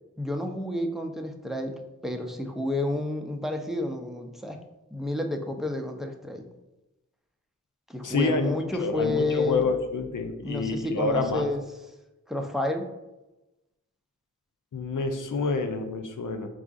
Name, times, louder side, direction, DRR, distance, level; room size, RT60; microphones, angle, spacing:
voice 1, 0.2-1.8 2.0-4.6 4.9-6.4 7.9-9.7 10.4-11.6 12.3-12.9, left 2 dB, ahead, 3 dB, 0.5 m, -30 dB
voice 2, 8.0-8.5 8.8-11.5 14.7-16.5, left 3 dB, 85° left, 5 dB, 0.5 m, -28 dB
4.8 x 2.4 x 3.6 m, 1.0 s
wide cardioid pair, 40°, 31 cm